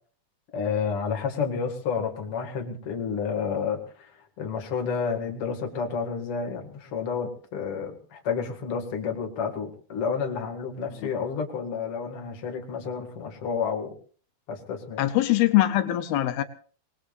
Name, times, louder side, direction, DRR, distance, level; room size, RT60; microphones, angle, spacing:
voice 1, 0.5-13.9 14.5-15.0, left 6 dB, 45° left, 2 dB, 2.7 m, -30 dB
voice 2, 15.0-16.4, left 15 dB, 85° left, 9 dB, 2.8 m, -22 dB
25.5 x 19.5 x 2.6 m, 0.41 s
omnidirectional pair, 4.3 m